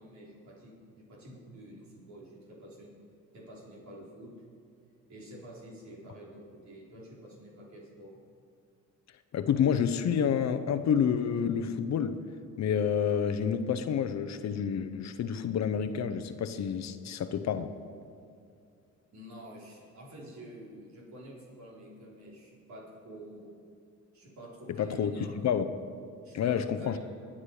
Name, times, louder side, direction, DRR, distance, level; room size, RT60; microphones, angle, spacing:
voice 1, 0.0-2.9 3.3-4.3 5.1-8.2 19.1-23.6 24.1-25.3 26.2-27.0, right 1 dB, 65° right, 4.5 m, -49 dB
voice 2, 9.3-12.2 12.6-17.7 24.8-25.7 26.3-27.0, left 7 dB, 65° left, 0.9 m, -29 dB
22.0 x 8.8 x 5.0 m
cardioid pair, 90°, 30 cm